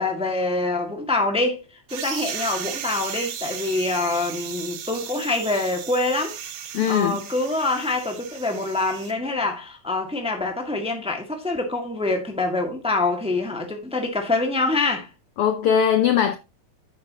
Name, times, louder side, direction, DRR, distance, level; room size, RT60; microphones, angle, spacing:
voice 1, 0.0-1.6 1.9-6.4 6.8-15.1, left 2 dB, 5° right, 1.2 m, -25 dB
sound 1, 1.9-9.1, right 9 dB, 75° right, 2.5 m, -35 dB
voice 2, 6.7-7.2 15.4-16.4, left 8 dB, 80° left, 1.2 m, -20 dB
11.0 x 8.3 x 2.9 m
omnidirectional pair, 3.4 m